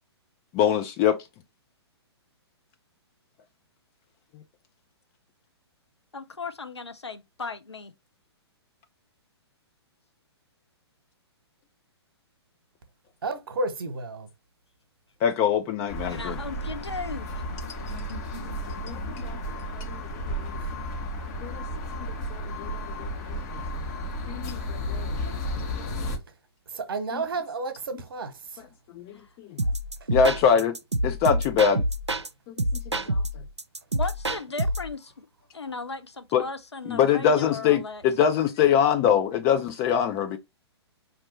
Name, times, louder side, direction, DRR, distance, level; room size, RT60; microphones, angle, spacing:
voice 1, 0.5-1.2 15.2-16.4 18.8-19.4 19.7-20.0 20.3-20.5 21.4-21.6 22.3-23.4 24.3-25.1 27.1-27.2 29.0-29.1 29.5-29.6 30.1-30.7 31.0-31.8 32.5-32.6 33.1-33.2 36.3-36.4 36.9-40.4, left 8 dB, 20° left, 0.3 m, -24 dB
voice 2, 6.1-7.9 16.1-17.4 29.1-29.3 29.6-29.8 33.9-35.1 35.5-38.3, left 4 dB, 75° left, 0.8 m, -36 dB
voice 3, 13.2-14.3 20.6-20.7 26.7-28.6 30.0-30.1, right 3 dB, 55° right, 1.1 m, -32 dB
sound 1, 15.9-26.2, equal, 35° left, 1.2 m, -33 dB
sound 2, 29.6-32.3 32.6-34.9, right 1 dB, 85° right, 0.5 m, -27 dB
5.1 x 2.8 x 2.9 m
figure-of-eight pair, 120°, 14 cm